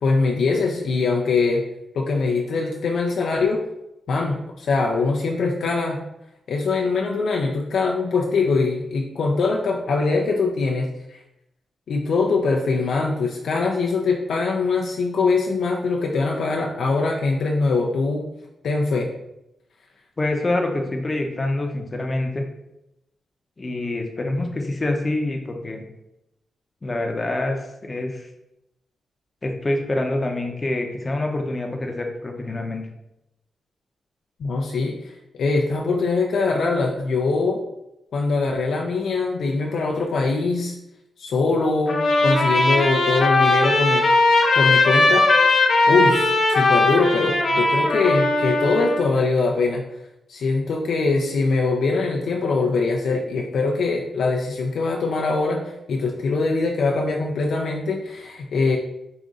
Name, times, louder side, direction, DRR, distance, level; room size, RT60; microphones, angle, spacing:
voice 1, 0.0-1.6 1.9-3.6 4.1-6.0 6.5-11.2 11.9-18.2 18.6-19.1 34.4-35.1 35.4-37.6 38.1-40.7 41.2-44.0 44.6-45.5 45.9-49.8 50.3-58.8, left 3 dB, 80° left, -1 dB, 0.5 m, -22 dB
voice 2, 20.2-22.4 23.6-25.8 26.8-28.3 29.4-32.9, left 2 dB, 30° left, 3 dB, 0.7 m, -26 dB
Trumpet, 41.9-49.0, left 2 dB, 55° left, 0.9 m, -18 dB
5.0 x 2.5 x 3.7 m, 0.88 s
wide cardioid pair, 115°, 0 cm